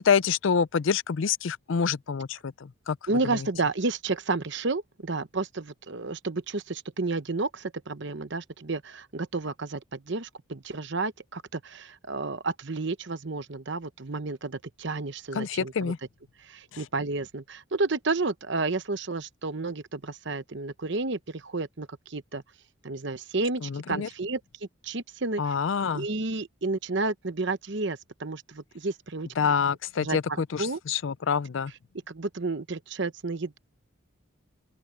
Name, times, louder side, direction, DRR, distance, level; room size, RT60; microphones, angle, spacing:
voice 1, 0.0-3.0 3.3-3.4 15.3-16.0 16.7-16.8 23.6-24.1 25.4-26.1 29.4-31.7, left 6 dB, 65° left, 0.4 m, -27 dB
voice 2, 3.1-15.9 16.4-22.4 22.8-24.4 24.8-25.5 25.9-29.3 30.0-30.8 32.1-33.6, right 3 dB, 55° right, 0.9 m, -31 dB
open air
head